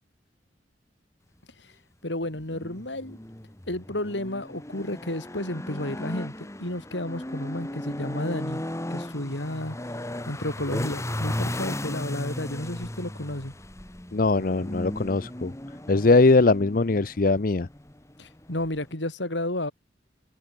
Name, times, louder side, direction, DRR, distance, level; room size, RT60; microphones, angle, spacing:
voice 1, 2.0-3.2 3.7-8.6 8.9-9.8 10.3-13.5 18.2-19.7, left 1 dB, 85° left, 4.8 m, -32 dB
sound 1, 2.3-18.9, left 1 dB, 15° left, 1.5 m, -36 dB
voice 2, 14.1-15.5 15.9-17.7, left 3 dB, 55° left, 0.7 m, -21 dB
head